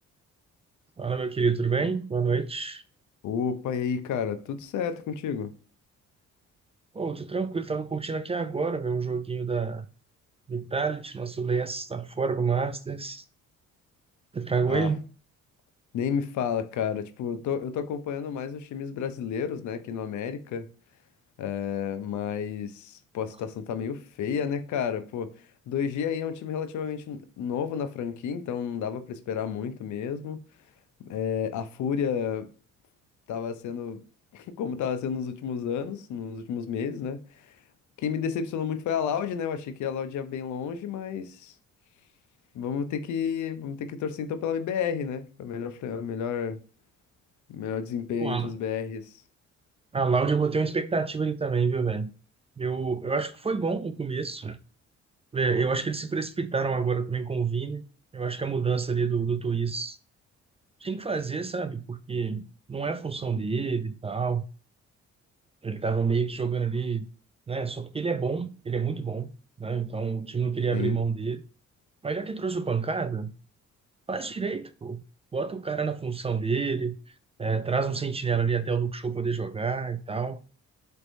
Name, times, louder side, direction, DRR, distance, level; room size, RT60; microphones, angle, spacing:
voice 1, 1.0-2.8 6.9-9.9 10.5-13.2 14.3-15.0 48.2-48.5 49.9-52.1 52.6-54.6 55.3-57.8 58.1-60.0 60.8-64.4 65.6-67.1 67.5-69.3 69.6-71.4 72.0-73.3 74.1-75.0 75.3-76.9 77.4-80.4, right 5 dB, 20° right, 0.3 m, -28 dB
voice 2, 3.2-5.5 14.7-14.9 15.9-20.7 21.4-25.3 25.7-30.4 31.1-32.5 33.3-34.0 34.3-37.5 38.0-41.5 42.5-46.6 47.5-49.1 63.5-63.7 70.7-71.0, left 7 dB, 75° left, 0.6 m, -31 dB
4.3 x 3.3 x 2.6 m
cardioid pair, 90°, 30 cm